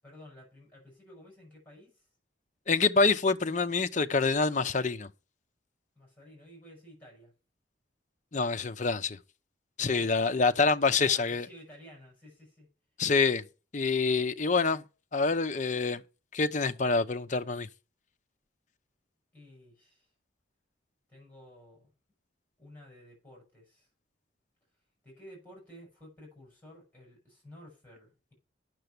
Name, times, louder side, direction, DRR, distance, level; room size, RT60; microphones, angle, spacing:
voice 1, 0.0-2.1 6.0-7.3 9.8-10.5 10.9-12.7 19.3-20.1 21.1-21.9 22.6-23.9 25.0-28.3, equal, 10° left, 7.2 m, -53 dB
voice 2, 2.7-5.1 8.3-9.2 9.8-11.5 13.0-13.4 13.7-14.8 15.1-16.0 16.3-17.7, left 4 dB, 40° left, 0.7 m, -26 dB
9.1 x 6.9 x 6.7 m
head